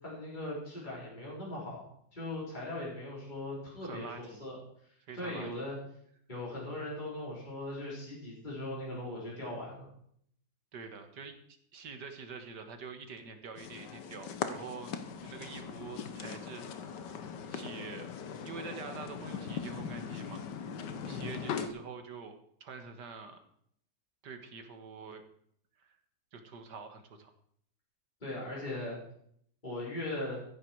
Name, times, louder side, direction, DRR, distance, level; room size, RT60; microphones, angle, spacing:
voice 1, 0.0-4.5 4.8-5.8 6.3-9.9 21.1-21.3 28.2-29.0 29.6-30.4, left 1 dB, 25° left, -6 dB, 4.8 m, -39 dB
voice 2, 3.8-4.4 5.1-5.5 10.7-16.6 17.5-18.1 18.4-20.4 21.1-23.4 24.2-25.2 25.8-26.0 26.3-27.3, right 5 dB, 60° right, 7 dB, 2.0 m, -46 dB
sound 1, 13.6-21.7, left 6 dB, 65° left, 1.6 m, -40 dB
15.0 x 10.5 x 4.7 m, 0.66 s
omnidirectional pair, 2.1 m